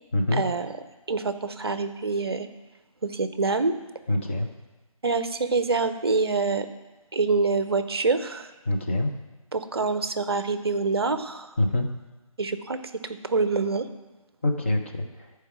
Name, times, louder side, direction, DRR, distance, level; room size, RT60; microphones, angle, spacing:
voice 1, 0.3-0.8 1.1-2.5 3.0-3.7 5.0-6.7 7.1-8.5 9.5-11.5 12.4-12.8 13.2-13.9, right 4 dB, 45° right, 11 dB, 0.6 m, -25 dB
voice 2, 4.1-4.5 8.7-9.1 11.6-11.9 14.4-15.0, left 1 dB, 20° left, 1 dB, 0.7 m, -24 dB
11.5 x 4.7 x 6.0 m, 1.2 s
figure-of-eight pair, 160°, 18 cm